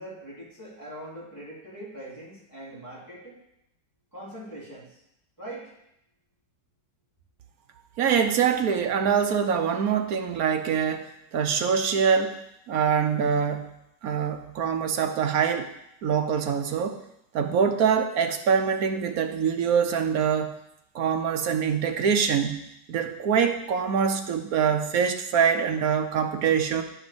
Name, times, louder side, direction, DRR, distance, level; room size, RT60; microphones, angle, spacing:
voice 1, 0.0-3.4 4.1-4.9 5.4-5.7, right 1 dB, 10° left, -9 dB, 3.5 m, -41 dB
voice 2, 8.0-11.1 11.3-12.4 12.7-13.7 14.0-15.7 16.0-17.0 17.3-20.5 20.9-22.6 22.9-26.8, right 7 dB, 65° right, 6 dB, 1.1 m, -24 dB
10.5 x 5.2 x 5.1 m, 0.81 s
omnidirectional pair, 1.9 m